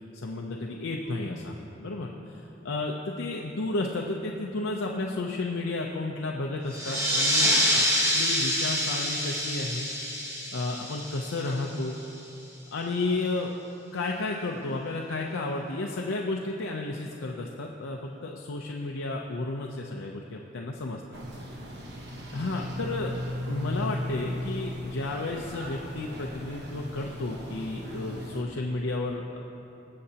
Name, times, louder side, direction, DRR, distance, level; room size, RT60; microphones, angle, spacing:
voice 1, 0.1-2.1 2.6-7.8 8.1-9.9 10.5-12.0 12.7-13.5 13.9-21.0 22.3-23.1 23.5-29.4, left 2 dB, 85° left, 0 dB, 0.6 m, -32 dB
sound 1, 6.7-11.9, equal, 15° right, 1.4 m, -27 dB
sound 2, 21.1-28.4, left 1 dB, 60° right, 1.3 m, -36 dB
21.0 x 7.6 x 2.9 m, 2.9 s
head